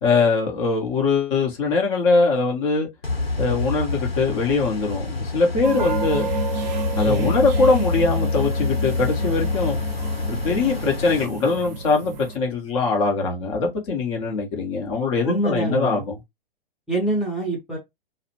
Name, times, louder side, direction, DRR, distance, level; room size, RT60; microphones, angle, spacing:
voice 1, 0.0-2.9 3.4-6.3 7.0-9.8 10.3-16.2, left 4 dB, 35° left, 0.8 m, -22 dB
sound 1, 3.0-11.3, left 3 dB, 90° left, 0.8 m, -26 dB
sound 2, 5.6-12.4, right 6 dB, 50° right, 0.5 m, -31 dB
voice 2, 15.2-16.0 16.9-17.8, right 2 dB, ahead, 0.6 m, -25 dB
2.3 x 2.0 x 3.0 m
figure-of-eight pair, 110°, 29 cm